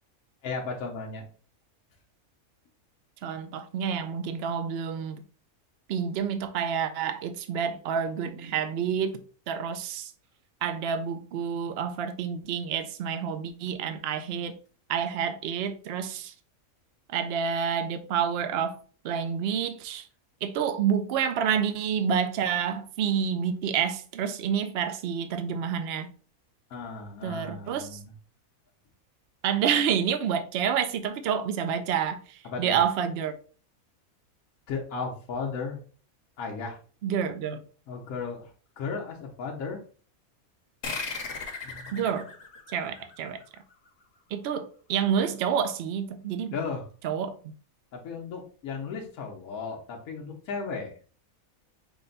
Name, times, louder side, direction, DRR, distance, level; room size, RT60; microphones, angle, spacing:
voice 1, 0.4-1.3 26.7-28.1 32.4-32.8 34.7-35.8 36.4-36.8 37.9-39.8 41.6-42.0 46.5-46.9 47.9-50.9, left 4 dB, 75° left, 1.3 m, -35 dB
voice 2, 3.2-5.2 5.9-9.2 9.5-10.1 10.6-14.6 14.9-16.3 17.1-18.8 19.0-20.1 20.4-26.1 27.2-28.0 29.4-33.3 37.0-37.6 41.9-42.3 42.7-43.4 44.3-46.5 47.0-47.4, right 7 dB, 60° right, 0.7 m, -28 dB
sound 1, 40.8-43.9, left 4 dB, 55° left, 1.2 m, -37 dB
5.8 x 2.2 x 3.8 m
omnidirectional pair, 1.5 m